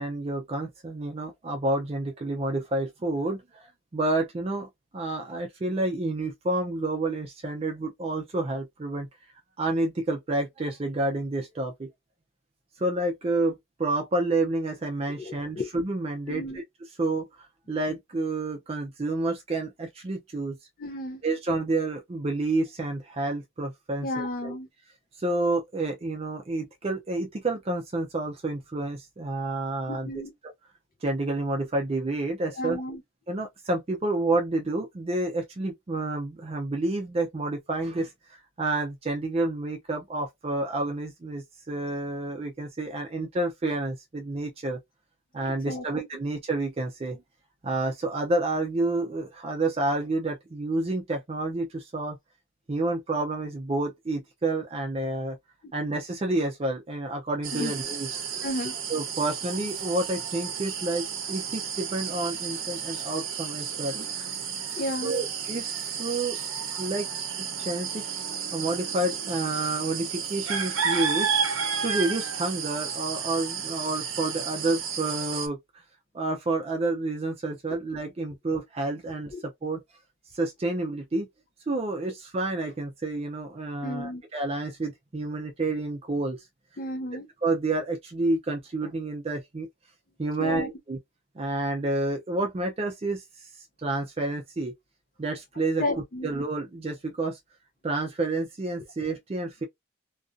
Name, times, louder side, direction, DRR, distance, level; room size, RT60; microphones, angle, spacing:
voice 1, 0.0-4.7 4.9-9.1 9.6-11.9 12.8-16.6 17.0-17.3 17.7-20.6 21.2-24.5 25.2-30.1 31.0-32.8 33.3-44.8 45.3-47.2 47.6-52.2 52.7-55.4 55.7-58.2 58.9-64.3 65.0-66.4 66.8-67.1 67.6-68.0 68.5-71.3 71.8-75.6 76.1-79.8 80.3-81.3 81.7-86.4 87.4-89.7 90.2-91.0 91.4-93.5 93.8-94.7 95.2-95.8 96.2-97.4 97.8-99.6, right 2 dB, 30° right, 0.4 m, -29 dB
voice 2, 15.1-15.7 16.3-16.6 20.8-21.2 24.0-24.7 29.9-30.3 32.6-33.0 45.5-45.8 55.6-55.7 57.5-57.7 58.4-58.7 64.8-65.1 79.3-79.4 83.8-84.2 86.8-87.3 90.4-90.7 95.8-96.3, left 1 dB, 45° left, 0.4 m, -32 dB
sound 1, 57.4-75.5, right 7 dB, 90° right, 0.6 m, -32 dB
2.4 x 2.3 x 2.5 m
head